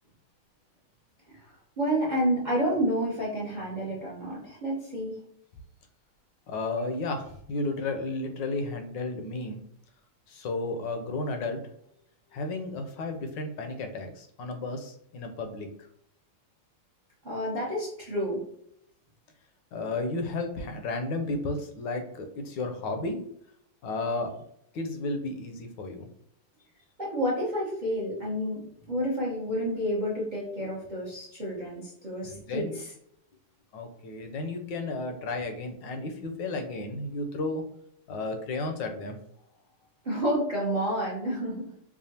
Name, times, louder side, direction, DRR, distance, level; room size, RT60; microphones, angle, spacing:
voice 1, 1.3-5.2 17.2-18.4 27.0-32.9 40.0-41.7, equal, 40° right, -4 dB, 0.6 m, -30 dB
voice 2, 6.5-9.6 10.3-11.6 12.3-15.9 19.7-23.2 23.8-24.3 24.7-26.1 32.2-32.8 33.7-37.6 38.1-39.2, left 2 dB, 70° left, 6 dB, 1.2 m, -33 dB
4.9 x 2.4 x 2.8 m, 0.70 s
omnidirectional pair, 2.4 m